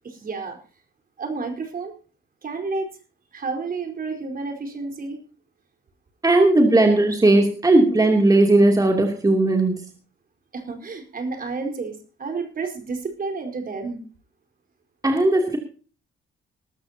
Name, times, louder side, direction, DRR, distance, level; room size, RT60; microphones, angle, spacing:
voice 1, 0.0-0.6 1.2-1.9 2.4-2.9 3.3-5.2 10.5-14.0, right 4 dB, 45° right, 4 dB, 4.5 m, -30 dB
voice 2, 6.2-9.8 15.0-15.6, right 2 dB, 20° right, 3 dB, 2.9 m, -17 dB
20.5 x 13.0 x 2.9 m, 0.38 s
cardioid pair, 90°, 20 cm